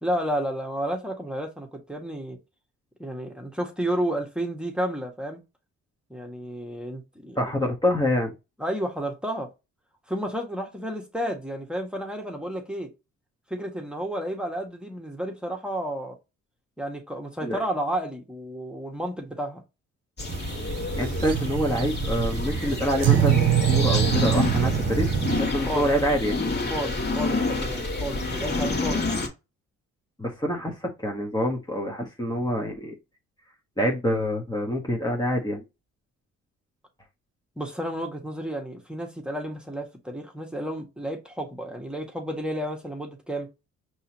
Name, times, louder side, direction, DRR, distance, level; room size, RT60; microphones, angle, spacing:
voice 1, 0.0-2.4 3.0-5.4 6.1-7.7 8.6-9.5 10.1-12.9 13.5-16.2 16.8-19.6 25.7-25.9 26.7-29.0 37.6-43.5, right 1 dB, 5° right, 1.5 m, -31 dB
voice 2, 7.4-8.3 17.4-17.6 21.0-23.4 23.7-25.1 25.4-26.4 30.2-32.9 33.8-35.6, equal, 15° left, 1.3 m, -26 dB
sound 1, 20.2-29.3, left 3 dB, 35° left, 2.0 m, -28 dB
sound 2, 20.3-25.4, right 10 dB, 55° right, 0.7 m, -24 dB
5.4 x 3.1 x 2.9 m
cardioid pair, 90°, 30 cm